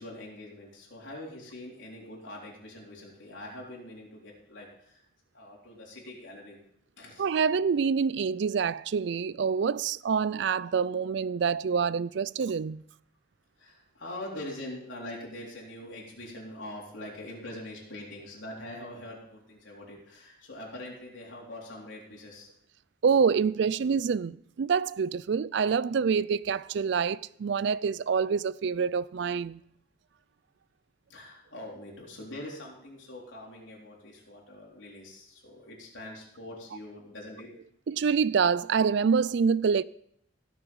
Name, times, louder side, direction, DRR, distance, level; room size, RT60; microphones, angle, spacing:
voice 1, 0.0-5.0 5.3-6.6 7.0-7.2 13.6-22.5 31.1-37.5, left 1 dB, 65° left, 3.9 m, -43 dB
voice 2, 7.2-12.8 23.0-29.6 37.9-39.8, right 6 dB, 60° right, 0.3 m, -26 dB
16.5 x 6.9 x 5.5 m
head